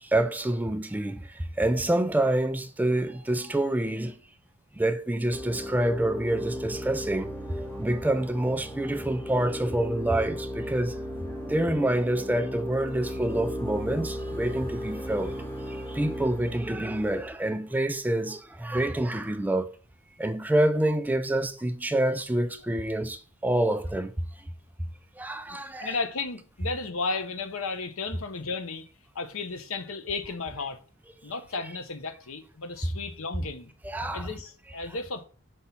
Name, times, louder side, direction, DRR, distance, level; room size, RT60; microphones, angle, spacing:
voice 1, 0.0-4.2 4.8-7.3 7.8-11.0 11.5-19.7 20.2-24.1 25.2-26.0 33.8-34.3, right 1 dB, 10° right, 0.3 m, -27 dB
sound 1, 5.3-17.3, equal, 10° left, 1.0 m, -36 dB
voice 2, 25.5-28.9 29.1-30.8 31.2-33.7 34.1-35.2, left 4 dB, 75° left, 0.8 m, -34 dB
5.4 x 3.5 x 5.7 m
head